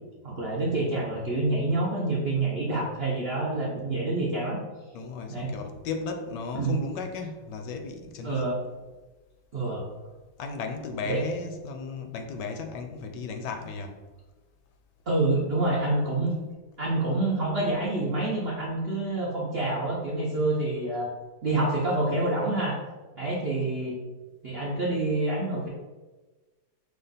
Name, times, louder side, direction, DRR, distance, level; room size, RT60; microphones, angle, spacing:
voice 1, 0.2-4.6 5.3-5.5 6.5-6.8 8.2-8.6 9.5-9.8 11.1-11.2 15.1-16.3 16.8-21.1 21.4-22.8 23.2-24.0 24.4-25.7, right 2 dB, 65° right, 0.6 m, -27 dB
voice 2, 4.9-8.5 10.4-14.0, left 4 dB, 75° left, 1.1 m, -35 dB
5.2 x 2.4 x 3.9 m
omnidirectional pair, 2.0 m